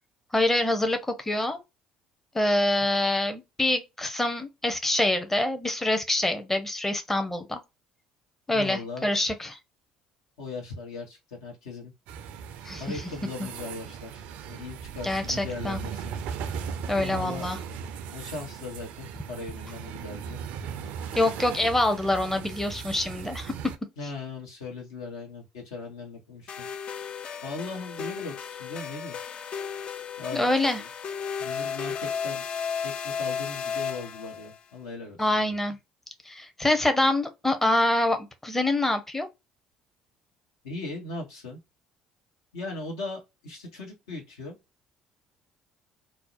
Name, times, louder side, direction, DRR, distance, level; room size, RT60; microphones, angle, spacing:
voice 1, 0.3-1.6 2.3-7.6 8.5-9.6 12.6-12.8 13.4-13.5 15.0-15.8 16.9-17.6 21.1-23.5 30.3-30.8 35.2-35.8 36.2-39.3, left 1 dB, 10° left, 0.6 m, -25 dB
voice 2, 8.5-9.1 10.4-11.9 12.8-16.1 16.9-17.5 18.1-20.4 24.0-26.7 27.4-29.2 30.2-30.5 30.8-30.9 31.4-32.4 32.8-35.5 40.6-41.6 42.5-44.5, left 3 dB, 80° left, 1.0 m, -38 dB
sound 1, 12.1-23.8, right 7 dB, 65° right, 0.3 m, -38 dB
sound 2, 26.5-34.6, left 6 dB, 45° left, 0.3 m, -34 dB
2.6 x 2.0 x 2.4 m
hypercardioid pair, 60°, 3 cm